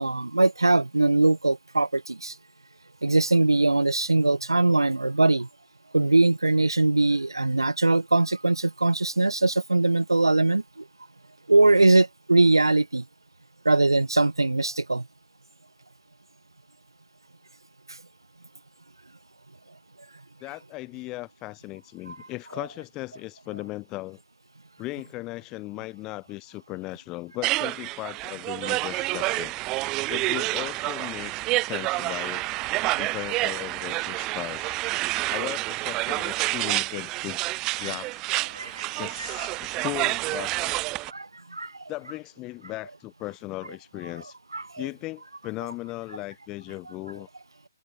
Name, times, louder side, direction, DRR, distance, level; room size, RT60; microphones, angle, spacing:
voice 1, 0.0-2.3 3.0-5.5 5.9-10.8 11.5-13.0 13.6-15.0 22.1-22.2 38.5-38.9 41.1-41.8 44.5-44.8, right 2 dB, 80° right, 1.2 m, -21 dB
voice 2, 20.4-24.2 24.8-29.5 30.1-32.5 33.0-34.8 35.3-37.4 37.8-38.2 39.0-40.9 41.9-44.4 44.8-47.3, left 20 dB, 20° left, 2.7 m, -37 dB
sound 1, 27.4-41.1, right 21 dB, 20° right, 0.4 m, -28 dB
open air
figure-of-eight pair, 140°, 2 cm